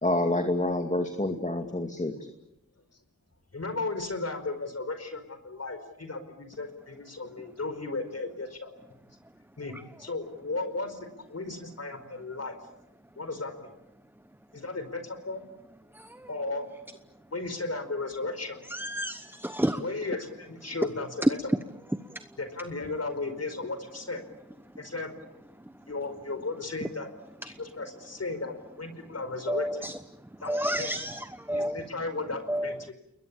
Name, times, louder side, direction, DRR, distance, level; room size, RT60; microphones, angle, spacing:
voice 1, 0.0-2.1, left 1 dB, 25° left, 5 dB, 2.3 m, -27 dB
voice 2, 3.5-8.7 9.6-12.6 13.2-13.7 14.5-15.5 16.3-16.7 17.3-18.6 19.7-21.4 22.4-24.2 24.8-25.1 25.9-27.1 27.4-29.9 30.4-31.0 31.5-32.9, left 3 dB, 55° left, 9 dB, 4.9 m, -35 dB
voice 3, 18.7-19.8 21.2-21.3 29.5-29.9 30.5-31.8 32.5-32.8, right 1 dB, 5° right, 11 dB, 1.0 m, -29 dB
30.0 x 21.5 x 8.7 m, 0.87 s
wide cardioid pair, 75°, 31 cm